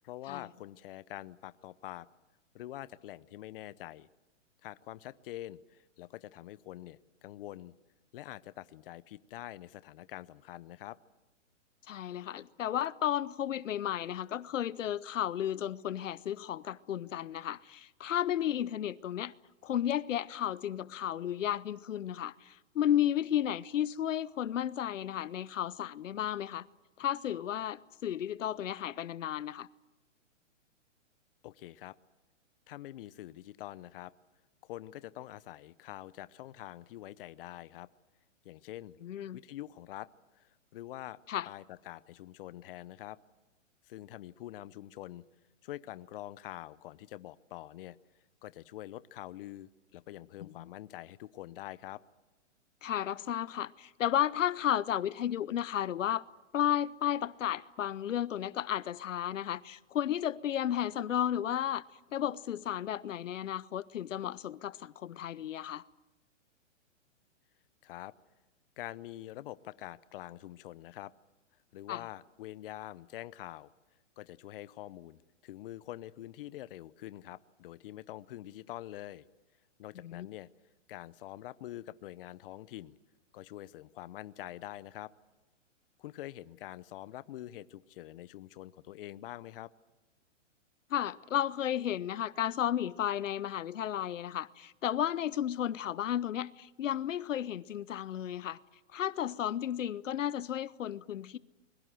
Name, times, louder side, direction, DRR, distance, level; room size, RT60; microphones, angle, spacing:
voice 1, 0.0-2.1 2.5-4.1 4.6-7.7 8.1-11.0 31.4-32.0 32.7-34.1 34.6-37.9 38.4-39.0 39.3-40.1 40.3-41.2 41.5-43.2 43.9-45.2 45.6-48.0 48.4-52.0 67.8-68.1 68.8-71.1 71.7-73.7 74.2-79.3 79.8-80.5 80.9-83.0 83.3-85.1 86.0-89.7, left 14 dB, 45° left, 0.8 m, -45 dB
voice 2, 11.9-19.3 19.6-26.7 27.0-29.7 39.0-39.4 41.3-41.5 50.4-50.7 52.8-56.2 56.5-61.8 62.1-65.8 71.9-72.0 80.0-80.3 90.9-98.6 98.9-101.4, left 10 dB, 80° left, 0.8 m, -33 dB
27.5 x 22.0 x 7.7 m
hypercardioid pair, 145°, 38 cm